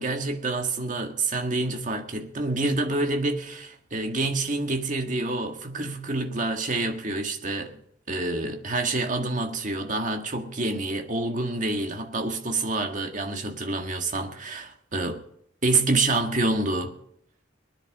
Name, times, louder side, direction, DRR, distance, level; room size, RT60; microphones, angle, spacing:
voice 1, 0.0-7.8 8.1-15.2 15.6-16.9, right 2 dB, 45° right, 1.8 m, -27 dB
23.5 x 10.0 x 3.9 m
head